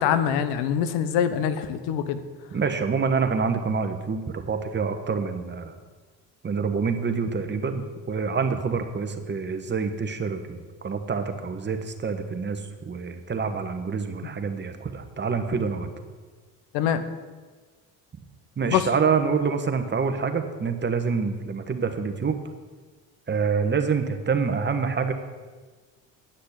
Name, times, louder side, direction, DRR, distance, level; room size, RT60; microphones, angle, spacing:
voice 1, 0.0-2.2 16.7-17.0 18.7-18.9, left 9 dB, 90° left, 12 dB, 1.0 m, -24 dB
voice 2, 2.5-5.8 6.4-15.9 18.6-22.4 23.3-25.1, right 5 dB, 30° right, 7 dB, 1.3 m, -26 dB
10.0 x 6.6 x 8.1 m, 1.4 s
supercardioid pair, 90°, 37 cm